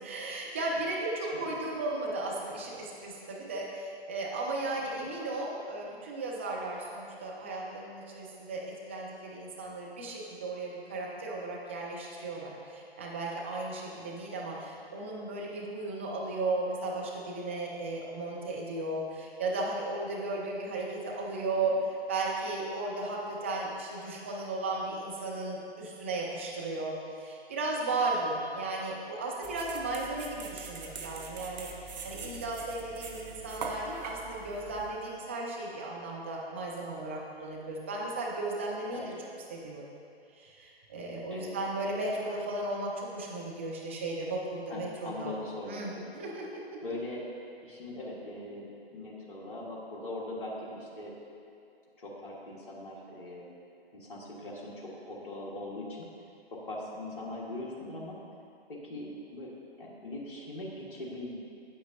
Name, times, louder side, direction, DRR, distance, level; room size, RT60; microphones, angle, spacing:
voice 1, 0.0-39.0 39.5-39.9 40.3-45.3 45.7-46.4, right 2 dB, 15° right, -3 dB, 0.4 m, -35 dB
voice 2, 1.2-1.5 4.9-5.0 13.9-14.1 32.2-32.5 38.9-39.2 41.3-41.5 44.7-46.1 46.8-47.3 47.6-51.1 52.0-53.5 53.9-56.1 56.5-58.2 58.7-59.5 59.8-61.4, left 1 dB, 50° left, -5 dB, 1.5 m, -41 dB
sound 1, 29.4-34.9, right 4 dB, 40° right, 0.8 m, -42 dB
8.6 x 8.6 x 2.7 m, 2.6 s
figure-of-eight pair, 130°, 32 cm